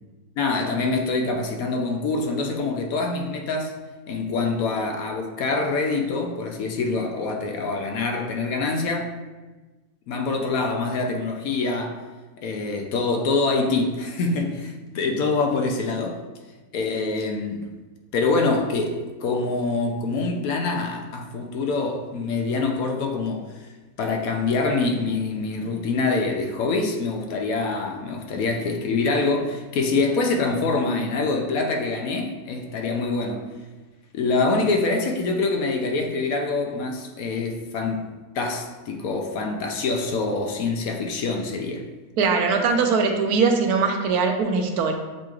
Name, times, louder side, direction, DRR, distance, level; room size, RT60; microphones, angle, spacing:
voice 1, 0.4-3.7 4.1-9.1 10.1-12.0 12.4-16.2 16.7-17.7 18.1-23.7 24.0-33.5 34.1-38.1 38.3-41.8, left 3 dB, 75° left, 3 dB, 1.0 m, -25 dB
voice 2, 42.2-45.0, right 5 dB, 80° right, 4 dB, 1.1 m, -21 dB
7.5 x 3.0 x 2.3 m, 1.2 s
omnidirectional pair, 1.6 m